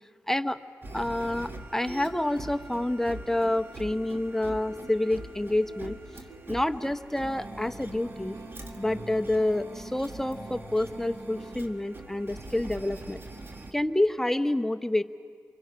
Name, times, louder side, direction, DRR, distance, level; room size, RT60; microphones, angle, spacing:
voice 1, 0.3-0.6 0.9-6.0 6.5-8.4 8.8-13.2 13.7-15.0, left 1 dB, 5° left, 10 dB, 0.9 m, -28 dB
sound 1, 0.8-13.7, right 2 dB, 40° right, 1.8 m, -43 dB
sound 2, 0.8-13.8, right 2 dB, 80° right, 2.8 m, -52 dB
25.5 x 23.5 x 5.6 m, 2.2 s
cardioid pair, 55°, 6 cm